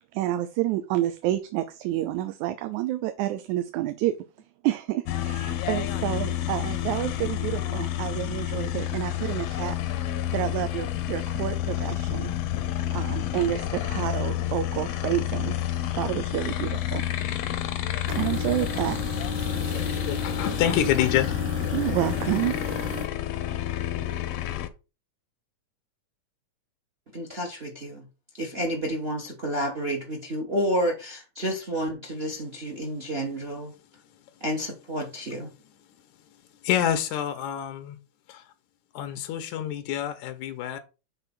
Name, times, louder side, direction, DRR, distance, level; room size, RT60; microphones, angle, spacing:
voice 1, 0.1-4.2 4.6-12.3 12.9-15.6 16.0-17.0 18.1-19.4 21.7-22.6, right 13 dB, 85° right, 2.0 m, -29 dB
sound 1, 5.1-24.7, left 12 dB, 70° left, 1.5 m, -30 dB
sound 2, 18.1-23.1, left 2 dB, 10° right, 0.7 m, -33 dB
voice 2, 19.7-21.4 36.6-38.0 38.3-38.5 38.9-40.8, left 10 dB, 90° left, 2.2 m, -27 dB
voice 3, 27.1-28.1 28.3-33.7 34.4-35.5, equal, 40° right, 0.8 m, -30 dB
6.7 x 3.9 x 5.9 m
omnidirectional pair, 3.4 m